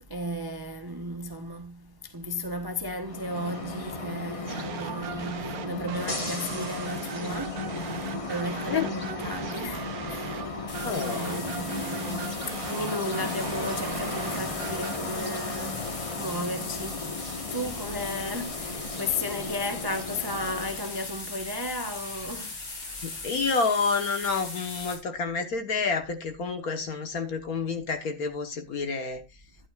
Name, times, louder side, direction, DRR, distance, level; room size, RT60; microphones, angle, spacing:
voice 1, 0.1-22.6 22.8-23.3, left 1 dB, 25° right, 0.5 m, -35 dB
sound 1, 2.9-21.0, left 3 dB, 20° left, 1.0 m, -35 dB
sound 2, 4.5-15.0, right 10 dB, 60° right, 1.0 m, -39 dB
sound 3, 10.7-24.9, left 3 dB, 80° left, 3.9 m, -39 dB
voice 2, 10.8-11.4 23.0-29.2, left 4 dB, 50° left, 1.5 m, -29 dB
12.0 x 10.5 x 2.4 m
omnidirectional pair, 2.2 m